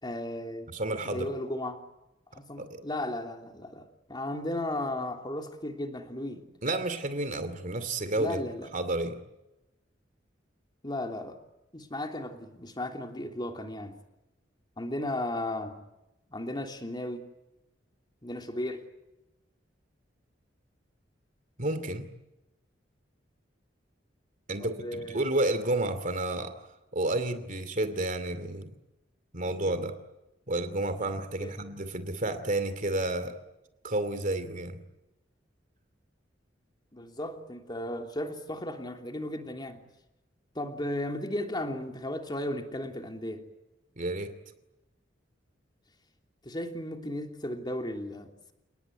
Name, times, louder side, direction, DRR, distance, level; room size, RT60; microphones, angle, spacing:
voice 1, 0.0-0.7 1.0-1.8 2.3-6.5 8.2-8.7 10.8-11.4 11.7-14.0 14.8-15.8 16.3-17.3 18.2-18.8 24.6-25.3 31.4-31.5 36.9-39.8 40.5-43.5 46.4-48.5, left 1 dB, 25° left, 4 dB, 3.2 m, -35 dB
voice 2, 0.7-1.3 2.6-2.8 6.6-8.4 8.7-9.2 21.6-22.1 24.5-26.5 26.9-28.7 29.3-30.0 30.5-33.3 33.8-34.8 44.0-44.3, right 2 dB, 45° right, 10 dB, 2.6 m, -30 dB
29.5 x 19.5 x 9.7 m, 0.96 s
head